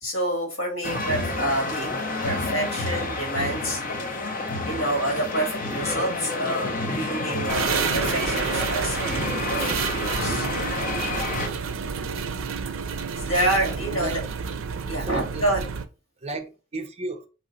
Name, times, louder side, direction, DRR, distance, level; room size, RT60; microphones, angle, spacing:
voice 1, 0.0-3.8 4.6-9.0 9.5-10.5 13.2-14.2 14.9-15.7, right 1 dB, 70° left, 1.9 m, -28 dB
sound 1, 0.8-11.5, left 2 dB, 40° left, 0.8 m, -29 dB
sound 2, 7.5-15.9, right 6 dB, 75° right, 0.5 m, -29 dB
voice 2, 13.6-14.2 15.0-15.4 16.2-17.3, right 2 dB, 30° right, 0.6 m, -33 dB
4.2 x 3.1 x 3.9 m
head